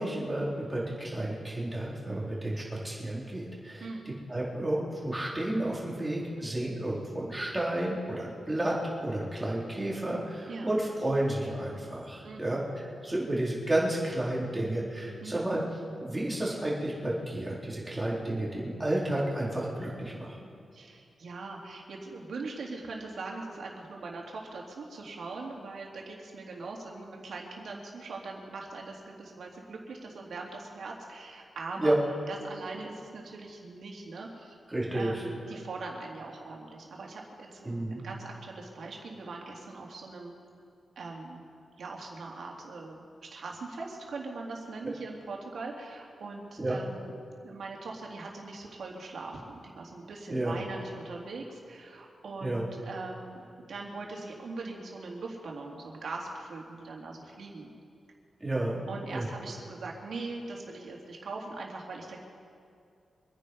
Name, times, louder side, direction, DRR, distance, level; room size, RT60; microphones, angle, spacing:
voice 1, 0.0-3.9 4.3-15.6 16.0-20.4 31.8-31.9 34.7-35.1 37.7-38.0 46.6-46.8 50.3-50.5 52.4-52.6 58.4-58.8 59.1-59.3, right 1 dB, 15° right, -5 dB, 4.0 m, -31 dB
voice 2, 3.8-4.1 10.5-10.8 12.2-12.6 15.2-15.5 20.7-31.9 32.3-34.6 34.9-40.3 40.9-41.4 41.8-43.1 43.3-47.1 47.4-57.7 58.9-62.2, right 3 dB, 70° right, -1 dB, 3.2 m, -41 dB
25.5 x 9.9 x 5.5 m, 2.5 s
wide cardioid pair, 105°, 0 cm